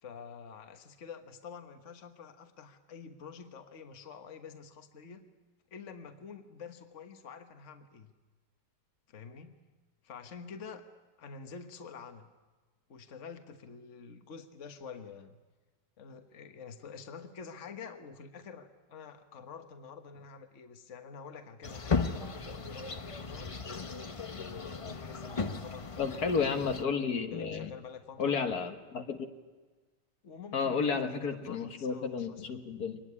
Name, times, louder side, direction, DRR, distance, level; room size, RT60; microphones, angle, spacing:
voice 1, 0.0-5.2 5.7-8.1 9.1-9.6 10.0-10.8 11.2-12.3 12.9-15.4 16.0-23.5 24.3-26.4 27.3-28.4 30.2-32.6, left 6 dB, 50° left, 7 dB, 1.6 m, -48 dB
sound 1, 21.6-26.8, left 4 dB, 30° left, 0.6 m, -36 dB
voice 2, 26.0-27.7 28.2-29.3 30.5-33.0, left 5 dB, 65° left, 6 dB, 1.9 m, -32 dB
24.0 x 19.5 x 9.8 m, 1.3 s
omnidirectional pair, 1.8 m